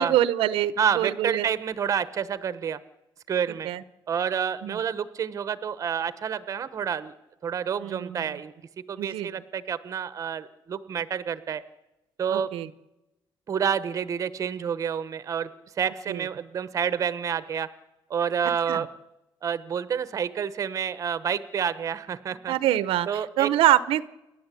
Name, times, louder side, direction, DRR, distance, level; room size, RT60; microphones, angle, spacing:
voice 1, 0.0-1.5 3.6-3.8 4.6-4.8 7.8-8.4 9.0-9.3 12.3-12.7 16.1-16.2 18.7-18.8 22.5-24.0, right 13 dB, 85° right, 15 dB, 0.9 m, -25 dB
voice 2, 0.8-2.8 3.3-3.7 4.1-7.1 7.4-8.5 8.9-11.6 12.2-12.5 13.5-15.5 15.8-17.7 18.1-18.9 19.4-22.5 23.1-23.5, right 7 dB, 35° right, 14 dB, 1.0 m, -28 dB
28.5 x 11.5 x 8.4 m, 0.93 s
cardioid pair, 155°, 9 cm